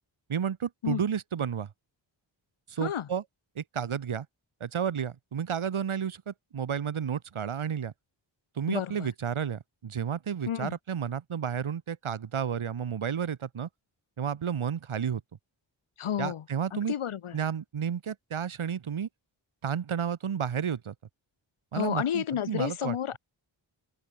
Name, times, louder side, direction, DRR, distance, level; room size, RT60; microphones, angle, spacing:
voice 1, 0.3-1.7 2.7-3.2 3.6-4.3 4.6-7.9 8.6-13.7 14.2-15.2 16.2-16.9 17.3-19.1 19.6-20.9 21.7-23.0, right 8 dB, 80° right, 2.0 m, -31 dB
voice 2, 8.7-9.1 10.5-10.7 16.0-16.4 16.7-17.4 21.7-23.2, left 9 dB, 90° left, 1.5 m, -31 dB
open air
cardioid pair, 50°, 48 cm